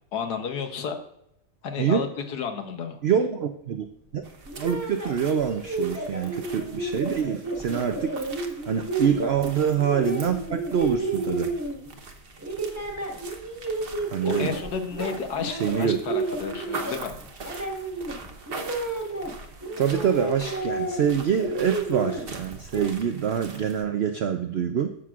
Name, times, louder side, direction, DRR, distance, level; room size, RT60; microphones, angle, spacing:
voice 1, 0.1-1.0 1.6-3.0 8.8-8.9 14.2-15.5 15.8-17.1, left 6 dB, 70° left, 6 dB, 1.5 m, -31 dB
voice 2, 3.0-3.9 4.1-4.2 4.6-11.5 14.1-14.6 15.5-16.0 19.8-24.9, right 8 dB, 80° right, 6 dB, 0.5 m, -26 dB
sound 1, 4.2-23.8, right 3 dB, 45° right, 0.9 m, -43 dB
sound 2, 4.5-12.0 12.4-14.6 14.9-19.3 19.6-21.1 21.3-22.9, right 2 dB, 10° right, 1.2 m, -31 dB
14.0 x 6.0 x 2.4 m, 0.76 s
omnidirectional pair, 1.8 m